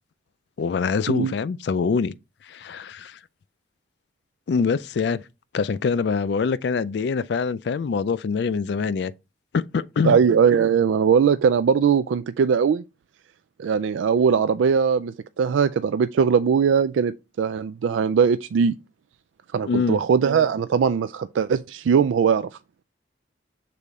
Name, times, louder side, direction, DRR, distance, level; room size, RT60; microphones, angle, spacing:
voice 1, 0.6-2.1 2.4-3.2 4.5-5.2 5.5-9.1 9.5-10.2 19.7-20.0, left 5 dB, 60° left, 0.3 m, -24 dB
voice 2, 10.0-12.8 13.6-18.8 19.5-22.5, right 6 dB, 85° right, 0.3 m, -20 dB
6.8 x 4.1 x 3.6 m
head